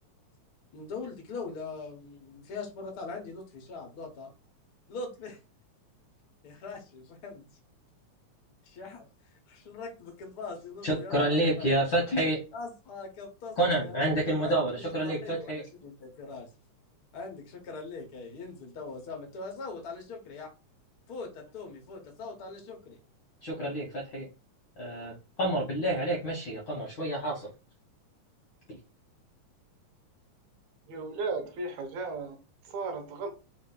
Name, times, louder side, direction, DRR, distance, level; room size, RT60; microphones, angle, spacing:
voice 1, 0.7-4.3 4.9-5.4 6.4-7.4 8.6-9.1 9.5-11.7 12.5-16.5 17.1-20.5 21.1-23.0, left 4 dB, 90° left, 0.8 m, -41 dB
voice 2, 10.8-12.4 13.6-15.6 23.4-24.3 24.8-25.1 25.4-27.5, right 1 dB, 65° left, 1.1 m, -28 dB
voice 3, 30.9-32.4 32.6-33.3, right 3 dB, 80° right, 2.0 m, -35 dB
4.6 x 2.4 x 3.8 m
omnidirectional pair, 3.4 m